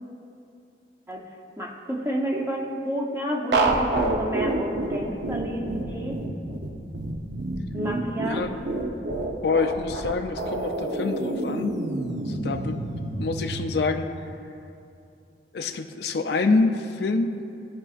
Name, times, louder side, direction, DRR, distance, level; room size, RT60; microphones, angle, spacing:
voice 1, 1.6-6.2 7.7-8.4, right 1 dB, 15° right, -1 dB, 0.8 m, -30 dB
sound 1, 3.5-13.7, right 2 dB, 85° right, 0.7 m, -28 dB
voice 2, 9.4-11.8 12.2-14.1 15.5-17.4, left 3 dB, 70° left, 7 dB, 0.4 m, -26 dB
16.0 x 5.4 x 2.4 m, 2.6 s
head